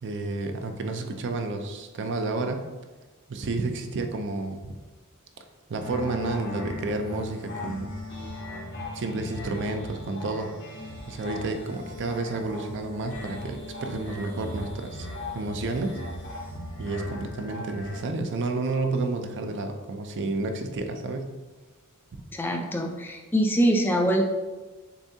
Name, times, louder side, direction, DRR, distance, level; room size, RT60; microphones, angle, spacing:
voice 1, 0.0-2.7 3.3-4.7 5.7-7.9 8.9-10.5 11.1-15.1 15.3-16.0 16.8-21.3 22.1-22.2, right 3 dB, 55° right, 6 dB, 0.5 m, -30 dB
sound 1, 5.8-18.0, left 1 dB, 55° left, 1.2 m, -38 dB
voice 2, 22.3-24.3, right 1 dB, 10° left, 3 dB, 0.3 m, -24 dB
7.0 x 2.6 x 2.7 m, 1.2 s
head